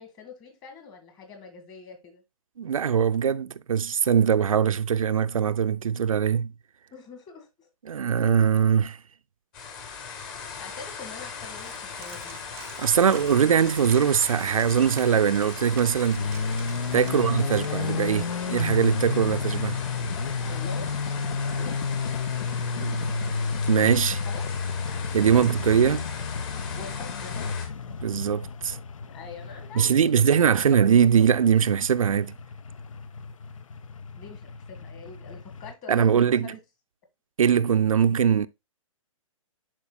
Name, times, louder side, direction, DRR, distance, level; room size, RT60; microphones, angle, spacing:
voice 1, 0.0-2.2 6.9-7.7 10.6-12.4 17.0-17.3 20.5-20.9 21.4-21.8 24.2-24.5 25.3-25.5 26.8-27.6 29.1-30.8 34.2-36.6, left 5 dB, 20° left, 1.8 m, -44 dB
voice 2, 2.6-6.5 7.9-9.0 12.8-16.3 16.9-19.8 22.8-23.1 23.7-24.2 25.1-26.1 28.0-28.8 29.7-32.3 35.9-36.5 37.4-38.5, right 7 dB, 75° right, 0.5 m, -22 dB
sound 1, 9.5-27.7, left 5 dB, 40° left, 2.2 m, -39 dB
Coin (dropping), 11.4-17.7, right 13 dB, 15° right, 0.4 m, -48 dB
sound 2, 16.2-35.7, left 5 dB, 70° left, 0.6 m, -32 dB
11.0 x 4.5 x 2.3 m
figure-of-eight pair, 130°, 18 cm